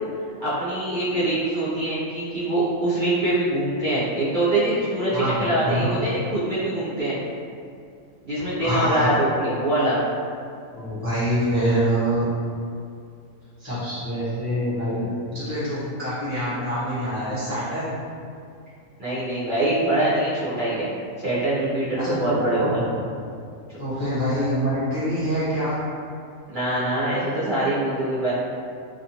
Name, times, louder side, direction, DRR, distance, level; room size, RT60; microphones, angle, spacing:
voice 1, 0.4-7.2 8.2-10.0 19.0-20.9 21.2-22.8 26.5-28.3, right 1 dB, 45° right, -12 dB, 0.7 m, -24 dB
voice 2, 5.1-5.9 8.4-9.1 10.7-12.3 13.6-17.9 22.0-23.0 23.8-25.8, equal, 15° left, -13 dB, 0.6 m, -25 dB
2.5 x 2.4 x 2.8 m, 2.3 s
omnidirectional pair, 1.4 m